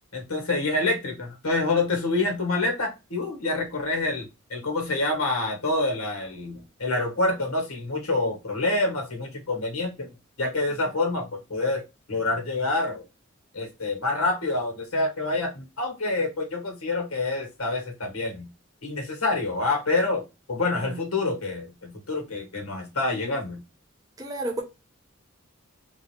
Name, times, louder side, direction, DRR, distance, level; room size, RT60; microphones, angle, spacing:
voice 1, 0.1-10.1 10.4-11.8 12.1-13.0 13.5-18.5 18.8-23.6, left 2 dB, 85° left, 1.5 m, -27 dB
voice 2, 24.2-24.6, right 1 dB, 15° right, 0.7 m, -32 dB
3.9 x 2.5 x 3.1 m
head